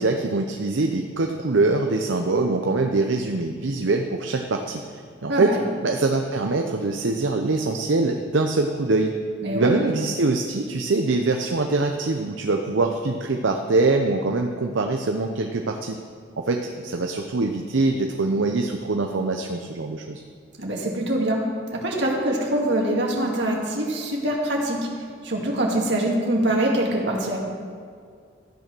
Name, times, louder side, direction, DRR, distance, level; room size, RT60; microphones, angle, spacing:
voice 1, 0.0-9.2 9.5-16.0 16.4-20.2, right 3 dB, 80° right, 4 dB, 0.7 m, -23 dB
voice 2, 5.3-5.6 9.4-9.7 20.6-21.4 21.7-24.9 25.2-27.4, right 1 dB, 65° right, -1 dB, 2.3 m, -24 dB
13.0 x 9.1 x 6.1 m, 2.2 s
head